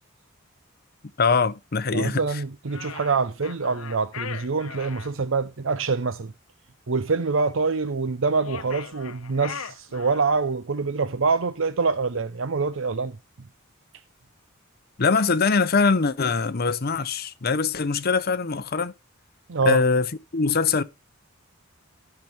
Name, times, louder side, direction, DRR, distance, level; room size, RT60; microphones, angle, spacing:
voice 1, 1.2-2.2 15.0-18.9 19.7-20.8, left 4 dB, 45° left, 0.7 m, -22 dB
voice 2, 1.9-6.3 6.9-13.2 19.5-19.8, right 4 dB, 65° right, 0.6 m, -25 dB
sound 1, 2.7-5.1 8.3-10.5, left 7 dB, 85° left, 0.8 m, -39 dB
13.5 x 5.8 x 3.4 m
head